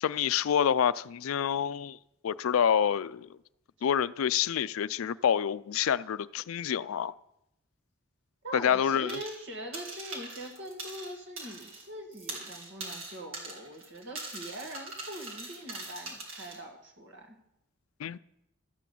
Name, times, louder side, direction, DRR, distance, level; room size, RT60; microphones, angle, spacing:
voice 1, 0.0-2.0 2.2-3.4 3.8-7.1 8.5-9.2 18.0-18.2, left 8 dB, 90° left, 0.4 m, -27 dB
voice 2, 8.4-17.4, right 1 dB, 60° right, 2.0 m, -42 dB
sound 1, 9.1-9.5 9.7-11.9 12.1-16.6, right 2 dB, 80° right, 3.1 m, -42 dB
13.0 x 6.1 x 8.4 m
head